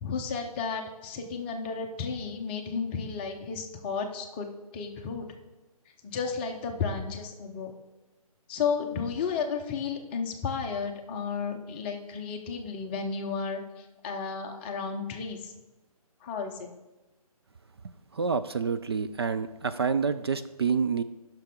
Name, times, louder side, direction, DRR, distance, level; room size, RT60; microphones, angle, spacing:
voice 1, 0.0-4.5 4.7-5.3 6.0-7.7 8.5-13.6 14.0-15.5 16.2-16.5, left 5 dB, 15° left, 3 dB, 0.7 m, -33 dB
voice 2, 18.1-21.0, right 5 dB, 40° right, 10 dB, 0.4 m, -28 dB
15.0 x 5.9 x 3.7 m, 1.1 s
figure-of-eight pair, 145°, 20 cm